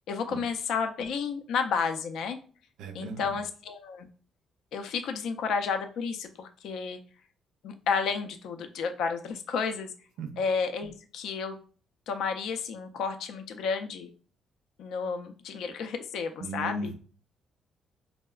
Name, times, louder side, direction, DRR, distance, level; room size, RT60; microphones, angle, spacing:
voice 1, 0.1-2.4 2.9-4.1 4.7-7.0 7.6-9.9 10.4-11.6 12.1-14.1 14.8-16.9, left 5 dB, 80° left, 7 dB, 0.4 m, -31 dB
voice 2, 2.8-3.3 10.2-10.3 16.4-16.9, right 1 dB, 90° right, 6 dB, 0.5 m, -36 dB
4.5 x 2.0 x 2.3 m, 0.41 s
cardioid pair, 90°, 0 cm